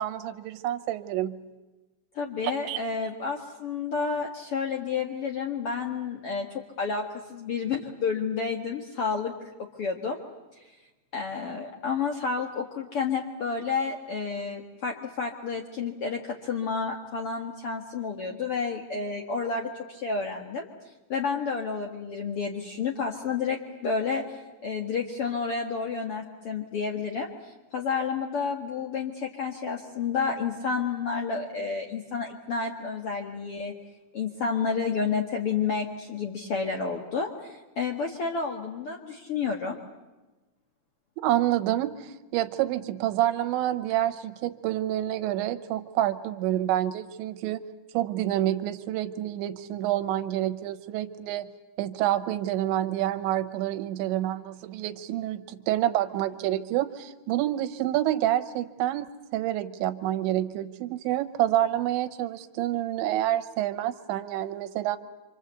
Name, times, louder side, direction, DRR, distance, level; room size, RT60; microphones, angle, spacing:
voice 1, 0.0-1.4 2.7-2.8 41.2-47.6 47.9-51.5 51.8-65.0, right 13 dB, 85° right, 10 dB, 3.4 m, -28 dB
voice 2, 2.1-6.5 6.8-7.0 7.3-9.3 9.8-10.2 11.1-20.7 21.1-33.7 34.1-39.8, left 5 dB, 65° left, 2 dB, 1.4 m, -30 dB
27.5 x 26.5 x 8.1 m, 1.1 s
omnidirectional pair, 5.2 m